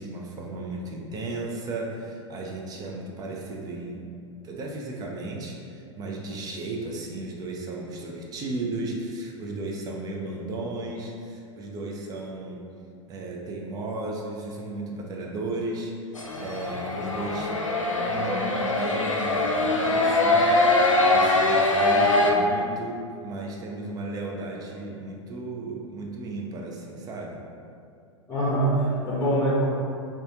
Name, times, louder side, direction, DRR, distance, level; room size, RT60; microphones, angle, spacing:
voice 1, 0.0-4.0 4.4-12.6 13.1-17.6 18.0-27.4, right 2 dB, 25° right, -1 dB, 0.4 m, -35 dB
sound 1, 16.1-22.3, left 2 dB, 90° left, 0.4 m, -22 dB
voice 2, 28.3-29.7, right 1 dB, 15° left, -9 dB, 0.8 m, -23 dB
4.1 x 2.3 x 2.7 m, 2.4 s
figure-of-eight pair, 95°, 16 cm